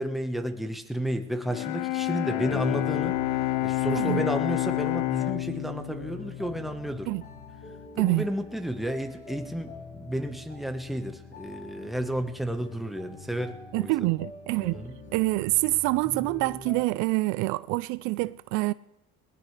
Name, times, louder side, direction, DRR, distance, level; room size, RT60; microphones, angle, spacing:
voice 1, 0.0-3.2 3.6-7.1 8.0-13.9 14.6-14.9 16.0-16.2, equal, ahead, 1.2 m, -32 dB
Bowed string instrument, 1.4-7.5, left 20 dB, 75° left, 0.5 m, -29 dB
sound 1, 2.2-16.8, left 3 dB, 35° left, 5.6 m, -45 dB
voice 2, 13.7-14.8 15.1-18.7, right 22 dB, 75° right, 0.5 m, -26 dB
19.5 x 19.5 x 3.3 m
cardioid pair, 115°, 30 cm